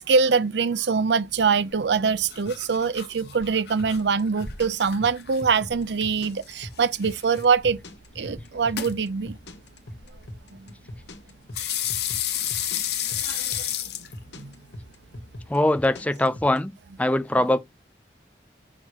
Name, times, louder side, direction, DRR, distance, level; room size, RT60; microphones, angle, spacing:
voice 1, 0.0-7.8 8.2-9.4 10.5-10.7 13.2-13.7 14.4-14.5, right 5 dB, 80° right, 0.6 m, -24 dB
sound 1, 1.7-15.9, left 10 dB, 65° left, 1.2 m, -34 dB
sound 2, 3.8-16.6, left 1 dB, 85° left, 1.5 m, -40 dB
voice 2, 15.5-16.7 17.0-17.6, left 1 dB, 10° left, 0.5 m, -22 dB
6.5 x 5.8 x 2.9 m
head